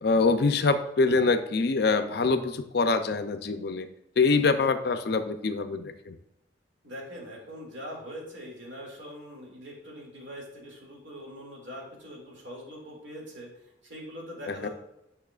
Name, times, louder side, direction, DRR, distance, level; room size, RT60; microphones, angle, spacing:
voice 1, 0.0-3.9 4.2-6.1 14.6-14.7, left 4 dB, 55° left, 10 dB, 0.4 m, -24 dB
voice 2, 6.8-13.5 13.8-14.7, equal, 80° right, -2 dB, 2.2 m, -42 dB
8.9 x 5.5 x 2.4 m, 0.89 s
head